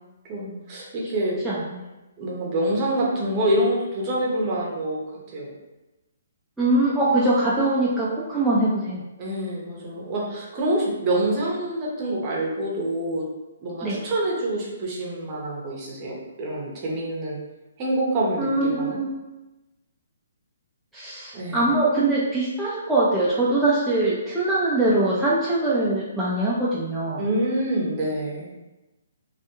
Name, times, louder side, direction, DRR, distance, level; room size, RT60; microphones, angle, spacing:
voice 1, 0.3-1.4 2.2-5.5 9.2-13.3 13.6-17.4 17.8-19.0 21.3-21.7 27.2-28.5, right 1 dB, 30° right, -4 dB, 0.7 m, -26 dB
voice 2, 1.4-1.8 6.6-9.0 13.8-14.0 18.4-19.1 20.9-27.2, right 2 dB, ahead, -10 dB, 0.4 m, -22 dB
2.4 x 2.2 x 2.9 m, 1.1 s
hypercardioid pair, 140°, 0 cm